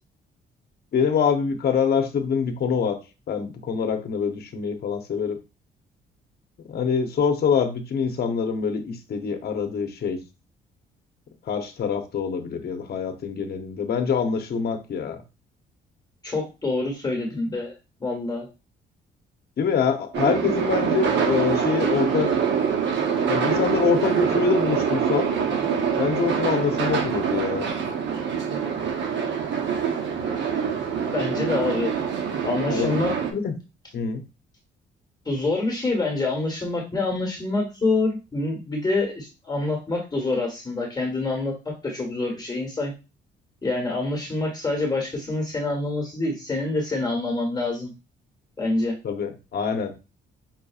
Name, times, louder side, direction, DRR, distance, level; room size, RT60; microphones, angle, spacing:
voice 1, 0.9-3.0 3.3-5.4 6.7-10.2 11.5-15.2 19.6-22.3 23.3-25.3 26.0-27.7 32.7-32.9 33.3-33.5 33.9-34.2 49.0-49.9, left 6 dB, 55° left, 6 dB, 0.8 m, -25 dB
voice 2, 16.2-17.7 18.0-18.5 31.1-31.9 32.4-33.1 35.2-42.9 43.6-47.9 48.6-49.0, left 2 dB, 20° left, 0 dB, 1.4 m, -26 dB
sound 1, 20.1-33.3, right 7 dB, 65° right, 0.8 m, -25 dB
5.6 x 2.6 x 2.4 m, 0.29 s
cardioid pair, 90°, 20 cm